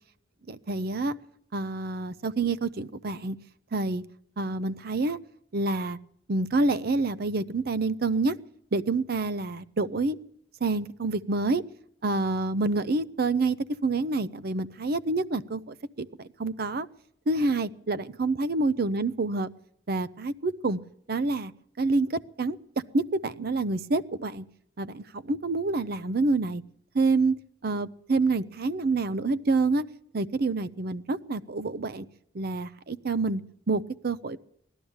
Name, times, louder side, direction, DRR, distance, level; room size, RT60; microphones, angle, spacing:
voice 1, 0.5-1.2 1.5-3.4 3.7-4.0 4.4-5.2 5.5-6.0 6.3-8.4 8.7-10.2 10.6-11.6 12.0-16.9 17.3-19.5 19.9-20.8 21.1-21.5 21.8-24.4 24.8-26.6 26.9-29.8 30.1-32.1 32.3-33.4 33.7-34.4, right 3 dB, 55° right, 16 dB, 0.6 m, -27 dB
17.0 x 12.0 x 7.1 m, 0.72 s
head